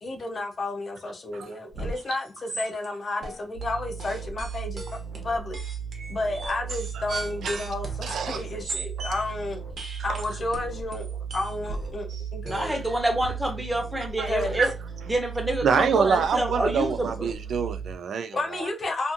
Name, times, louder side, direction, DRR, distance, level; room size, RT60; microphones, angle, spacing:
voice 1, 0.0-4.8 5.2-5.6 6.1-12.8 14.3-14.6 18.3-19.1, left 2 dB, 40° left, 0.5 m, -32 dB
sound 1, 1.7-2.0 2.2-2.9 3.2-3.6 4.0-9.2 9.8-13.3, right 2 dB, 60° right, 0.8 m, -37 dB
sound 2, 3.5-18.0, right 6 dB, 70° left, 1.0 m, -36 dB
voice 2, 8.0-8.4 12.7-12.8 14.2-14.3 14.6-14.7 15.6-18.7, right 6 dB, 80° right, 0.3 m, -26 dB
voice 3, 12.5-14.7 15.1-17.3, right 1 dB, 10° right, 0.7 m, -27 dB
2.6 x 2.4 x 2.5 m
wide cardioid pair, 140°, 0 cm